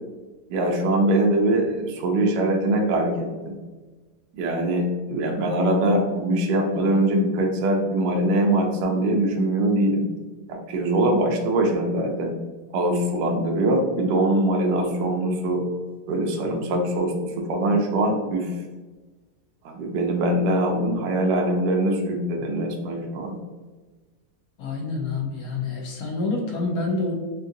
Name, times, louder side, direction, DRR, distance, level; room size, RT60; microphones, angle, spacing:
voice 1, 0.5-3.5 4.3-10.1 10.5-12.4 12.7-15.6 16.1-18.5 19.6-23.4, right 1 dB, 75° right, 1 dB, 1.1 m, -22 dB
voice 2, 24.6-27.1, left 3 dB, 65° left, -2 dB, 1.0 m, -27 dB
3.7 x 2.4 x 2.6 m, 1.3 s
omnidirectional pair, 2.0 m